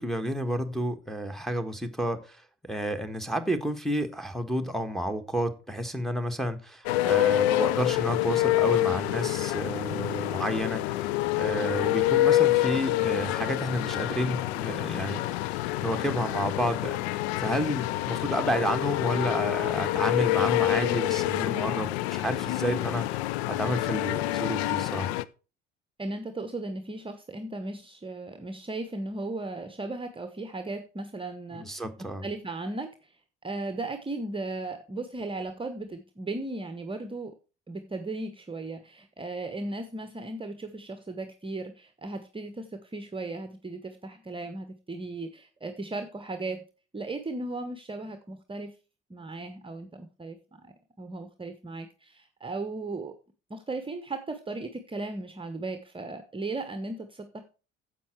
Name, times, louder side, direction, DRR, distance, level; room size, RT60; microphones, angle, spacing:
voice 1, 0.0-23.2 23.5-25.1 31.5-32.3, equal, ahead, 1.5 m, -31 dB
sound 1, 6.9-25.2, left 16 dB, 65° left, 0.6 m, -27 dB
voice 2, 26.0-33.1 33.4-37.3 37.7-46.6 46.9-48.7 49.1-50.4 50.6-53.1 53.5-57.4, right 2 dB, 15° right, 1.1 m, -36 dB
10.0 x 7.6 x 4.6 m
figure-of-eight pair, 55°, 35 cm